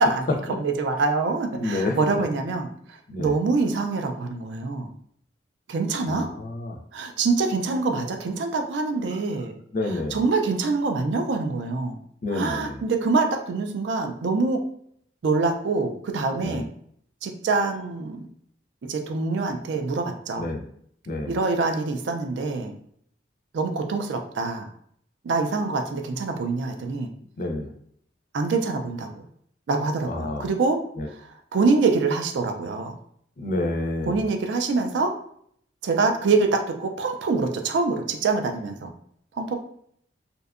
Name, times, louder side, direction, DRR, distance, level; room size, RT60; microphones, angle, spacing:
voice 1, 0.0-4.9 5.7-6.3 6.9-9.6 10.1-12.0 12.3-14.6 15.2-16.7 17.2-18.2 18.8-20.5 21.3-22.7 23.5-24.7 25.2-27.1 28.3-29.1 29.7-30.8 31.1-32.9 34.1-35.1 35.8-38.9 39.4-39.6, right 3 dB, 65° right, 4 dB, 0.4 m, -25 dB
voice 2, 1.5-2.0 3.1-3.3 6.0-6.8 9.7-10.2 12.2-12.8 16.4-16.7 20.4-20.6 21.1-21.4 27.4-27.7 30.1-30.5 31.0-31.1 33.4-34.2, left 2 dB, 45° left, 3 dB, 0.4 m, -29 dB
2.6 x 2.2 x 2.4 m, 0.66 s
head